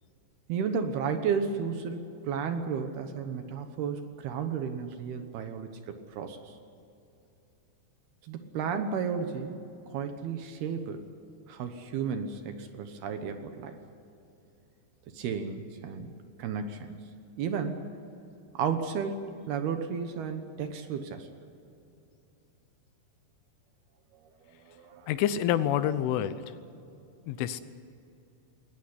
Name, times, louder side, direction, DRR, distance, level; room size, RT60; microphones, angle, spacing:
voice 1, 0.5-6.6 8.2-9.6 9.9-11.1 11.5-13.8 15.1-16.9 17.4-17.8 18.5-21.3 24.1-25.1, right 6 dB, 70° right, 7 dB, 2.8 m, -33 dB
voice 2, 25.1-26.3 27.3-27.6, left 11 dB, 90° left, 13 dB, 3.5 m, -27 dB
21.5 x 19.0 x 9.8 m, 2.7 s
omnidirectional pair, 5.4 m